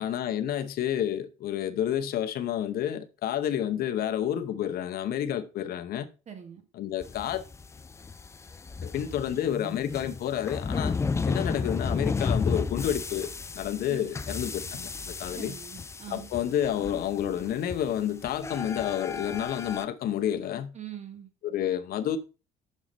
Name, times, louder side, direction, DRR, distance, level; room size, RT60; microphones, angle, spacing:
voice 1, 0.0-6.1 6.8-7.4 8.8-11.0 11.3-13.3 13.5-15.5 16.1-20.7 21.4-22.2, left 10 dB, 65° left, 0.8 m, -30 dB
voice 2, 6.3-6.6 13.9-14.1 15.3-16.3 20.7-21.3, right 9 dB, 40° right, 1.6 m, -43 dB
sound 1, 7.0-19.8, left 4 dB, 15° left, 0.3 m, -33 dB
6.3 x 5.7 x 3.9 m
cardioid pair, 110°, 17 cm